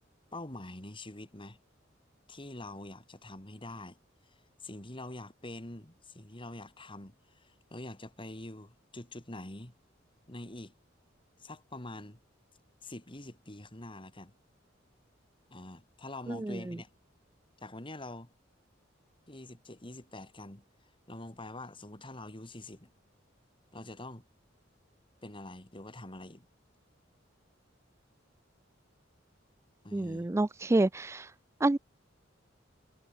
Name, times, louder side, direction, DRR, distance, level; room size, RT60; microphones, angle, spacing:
voice 1, 0.3-1.6 2.3-4.0 4.3-4.4 4.6-9.7 10.3-10.7 11.4-12.2 12.8-14.3 15.5-16.9 17.6-18.3 19.3-20.6 21.1-22.9 23.7-24.2 25.2-26.5 29.8-30.3, left 2 dB, 25° left, 2.8 m, -45 dB
voice 2, 16.3-16.8 29.9-31.3 31.6-31.8, right 2 dB, 15° right, 0.3 m, -28 dB
head